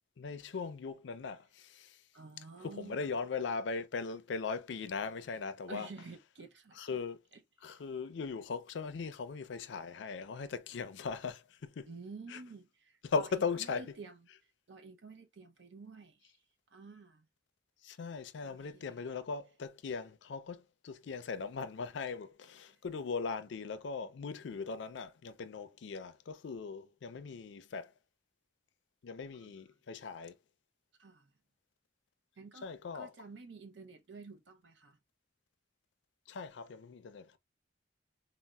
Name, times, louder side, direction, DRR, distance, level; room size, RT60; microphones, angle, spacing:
voice 1, 0.2-2.1 2.6-5.9 6.7-7.2 7.6-11.9 12.3-12.4 13.0-13.9 17.8-27.9 29.0-30.4 32.6-33.1 36.3-37.4, left 5 dB, 70° left, 0.4 m, -39 dB
voice 2, 2.1-3.1 5.7-7.0 7.6-7.8 11.9-14.2 14.7-16.3 16.7-17.2 18.4-19.0 22.7-22.8 24.2-24.3 29.3-29.5 31.0-31.3 32.4-32.7 32.9-35.0, right 4 dB, 65° right, 0.6 m, -50 dB
4.0 x 2.0 x 2.2 m
head